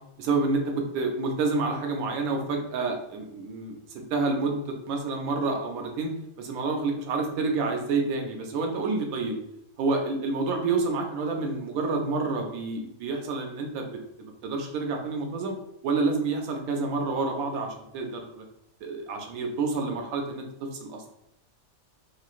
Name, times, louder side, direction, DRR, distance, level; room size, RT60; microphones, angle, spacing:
voice 1, 0.2-6.1 6.4-9.4 9.8-13.9 14.2-15.6 15.8-18.4 18.8-21.0, right 3 dB, 85° right, 2 dB, 1.0 m, -28 dB
3.0 x 2.4 x 2.4 m, 0.80 s
omnidirectional pair, 1.4 m